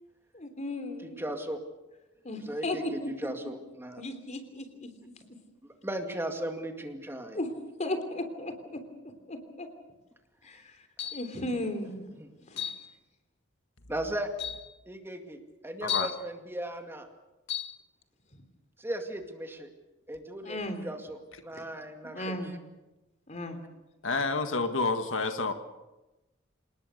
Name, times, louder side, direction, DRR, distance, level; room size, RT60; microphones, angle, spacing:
voice 1, 0.3-1.2 2.2-3.1 4.0-5.1 7.3-7.5 7.8-8.8 9.3-9.7 10.4-10.7 11.1-12.1 12.4-12.7 20.4-20.8 22.1-22.6 23.3-23.6, left 1 dB, 35° left, 8 dB, 3.3 m, -35 dB
voice 2, 1.2-1.6 2.3-4.0 5.6-7.4 12.2-12.3 13.9-14.3 14.9-17.1 18.8-19.7 20.1-22.5, right 1 dB, 10° right, 5 dB, 2.2 m, -37 dB
sound 1, 11.0-11.4 12.6-12.9 13.8-13.9 14.4-14.7 15.9-16.2 17.5-17.8, left 9 dB, 60° left, 2.0 m, -34 dB
voice 3, 24.0-25.5, left 3 dB, 90° left, 7 dB, 1.7 m, -29 dB
27.5 x 19.5 x 6.6 m, 1.0 s
head